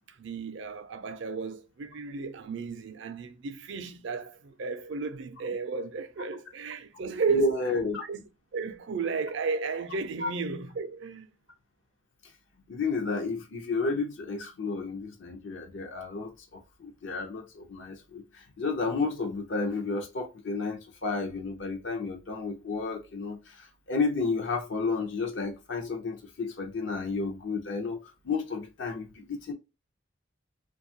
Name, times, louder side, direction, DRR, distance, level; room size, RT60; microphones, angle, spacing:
voice 1, 0.1-7.6 8.0-8.2 8.5-11.3, right 5 dB, 55° right, 0.4 m, -33 dB
voice 2, 7.3-8.1 10.2-10.3 12.7-29.5, left 4 dB, 60° left, 0.5 m, -32 dB
2.7 x 2.3 x 2.7 m
head